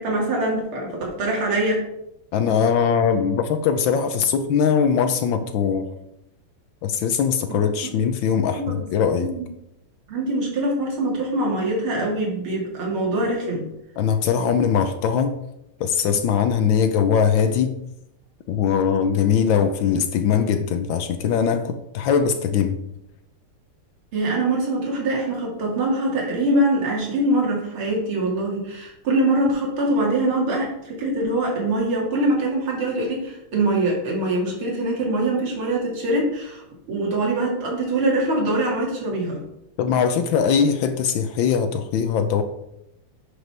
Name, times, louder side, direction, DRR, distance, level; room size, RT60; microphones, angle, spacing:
voice 1, 0.0-1.9 7.5-7.6 8.6-8.8 9.2-9.4 10.1-13.6 24.1-39.4, right 1 dB, 80° right, -2 dB, 3.1 m, -23 dB
voice 2, 2.3-5.9 6.8-9.3 14.0-15.4 15.8-17.8 18.5-22.8 39.8-42.4, left 7 dB, 70° left, 9 dB, 1.3 m, -21 dB
10.5 x 5.0 x 4.7 m, 0.84 s
omnidirectional pair, 2.3 m